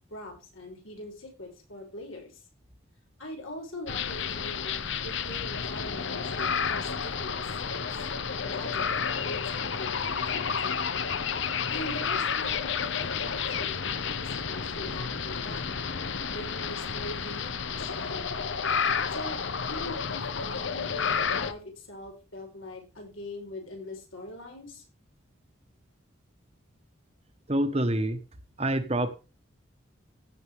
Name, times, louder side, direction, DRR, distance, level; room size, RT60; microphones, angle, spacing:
voice 1, 0.1-2.4 3.2-7.9 8.4-8.9 9.2-10.8 11.7-15.6 16.3-18.4 19.1-24.8, left 1 dB, 85° left, 1 dB, 6.3 m, -42 dB
sound 1, 3.9-21.5, left 6 dB, 65° left, 0.9 m, -31 dB
voice 2, 27.5-28.2 28.6-29.1, right 1 dB, 30° right, 8 dB, 1.2 m, -26 dB
16.0 x 7.4 x 3.5 m, 0.30 s
head